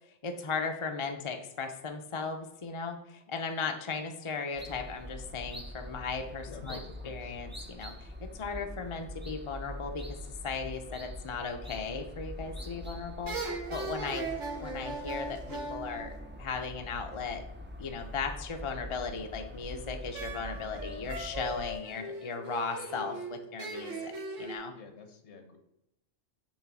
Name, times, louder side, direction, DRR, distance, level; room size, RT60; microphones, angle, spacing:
voice 1, 0.2-6.8 7.1-10.0 10.4-14.3 14.6-17.4 17.8-24.1 24.4-24.7, left 5 dB, 35° left, 4 dB, 0.6 m, -37 dB
sound 1, 4.6-21.8, left 1 dB, 15° right, 0.4 m, -44 dB
voice 2, 6.5-7.4 24.7-25.6, left 3 dB, 65° left, 5 dB, 1.4 m, -48 dB
sound 2, 12.5-12.9 13.3-16.9 20.1-24.6, right 2 dB, 80° right, 1.6 m, -39 dB
7.2 x 3.3 x 6.1 m, 0.83 s
omnidirectional pair, 1.3 m